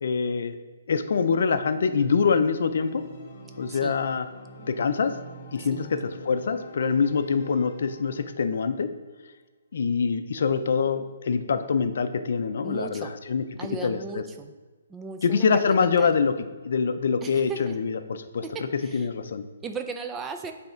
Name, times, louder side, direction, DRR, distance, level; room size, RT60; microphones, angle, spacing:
voice 1, 0.0-0.6 0.9-3.0 3.6-4.3 4.7-5.1 5.5-8.9 9.7-13.4 13.8-14.2 15.2-16.3 16.6-18.4 18.9-19.4, left 5 dB, 60° left, 9 dB, 0.5 m, -25 dB
Organ, 2.8-8.5, right 1 dB, 35° left, 1.0 m, -45 dB
voice 2, 12.6-13.1 13.6-14.5 14.9-16.1 17.2-17.8 18.4-18.5 18.8-19.1 19.6-20.5, right 4 dB, 10° right, 6 dB, 0.4 m, -37 dB
8.0 x 3.4 x 4.4 m, 1.3 s
hypercardioid pair, 170°, 0 cm